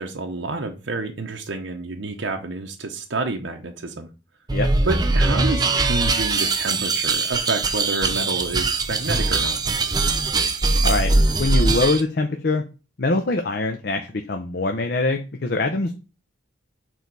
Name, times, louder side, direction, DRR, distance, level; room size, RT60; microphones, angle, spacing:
voice 1, 0.0-4.1 4.8-9.6, right 3 dB, 85° right, 3 dB, 0.9 m, -29 dB
sound 1, 4.5-12.0, right 3 dB, 20° right, 0.6 m, -21 dB
voice 2, 11.4-12.6 13.0-16.0, left 2 dB, 60° left, 5 dB, 0.7 m, -23 dB
6.3 x 4.1 x 4.7 m, 0.31 s
head